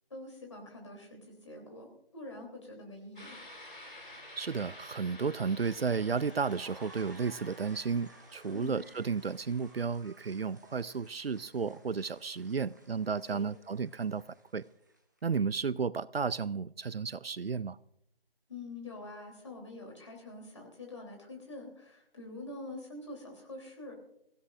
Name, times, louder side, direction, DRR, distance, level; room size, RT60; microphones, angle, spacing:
voice 1, 0.1-1.9 2.1-3.3 8.5-8.8 13.3-13.5 18.5-24.0, left 2 dB, 30° left, 3.3 m, -45 dB
sound 1, 3.2-9.8, left 1 dB, 55° left, 4.2 m, -52 dB
voice 2, 4.4-14.2 14.5-14.6 15.2-17.8, right 5 dB, 70° right, 0.5 m, -33 dB
sound 2, 5.9-15.2, right 2 dB, 20° right, 1.1 m, -58 dB
23.0 x 16.0 x 2.5 m
figure-of-eight pair, 165°, 31 cm